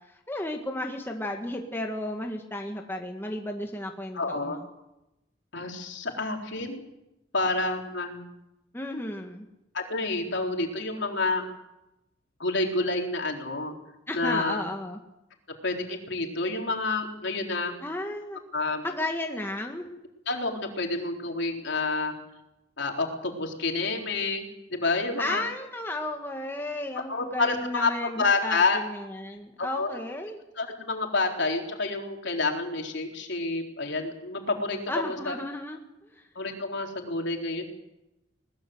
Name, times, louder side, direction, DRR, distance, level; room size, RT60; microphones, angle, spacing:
voice 1, 0.0-4.6 8.7-9.5 14.1-15.0 17.8-18.4 18.8-19.9 25.2-30.4 34.9-36.3, left 1 dB, 10° left, 2 dB, 1.8 m, -34 dB
voice 2, 4.1-4.6 5.5-6.8 7.3-8.2 9.7-11.4 12.4-13.7 14.1-14.6 15.6-17.7 18.5-18.8 20.3-22.1 22.8-25.4 27.1-28.8 29.6-30.0 30.6-35.4 36.4-37.6, left 3 dB, 65° left, 2 dB, 4.1 m, -29 dB
21.5 x 20.0 x 8.0 m, 0.92 s
head